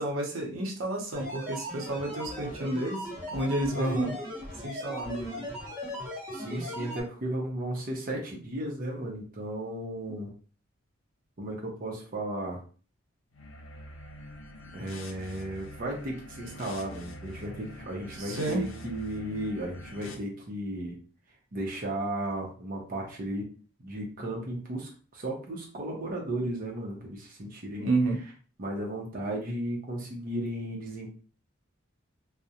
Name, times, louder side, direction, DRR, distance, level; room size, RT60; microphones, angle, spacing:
voice 1, 0.0-4.1 4.6-5.5 18.2-18.7 27.8-28.2, right 2 dB, 85° right, 0 dB, 0.6 m, -30 dB
sound 1, 1.1-7.0, equal, 10° right, 1.0 m, -38 dB
voice 2, 3.7-4.2 6.3-10.3 11.4-12.6 14.7-21.0 21.5-23.5 23.8-27.9 28.6-31.1, right 1 dB, 45° right, -1 dB, 0.6 m, -35 dB
sound 2, 13.3-20.1, left 1 dB, 80° left, 0.5 m, -45 dB
2.4 x 2.0 x 2.7 m, 0.39 s
head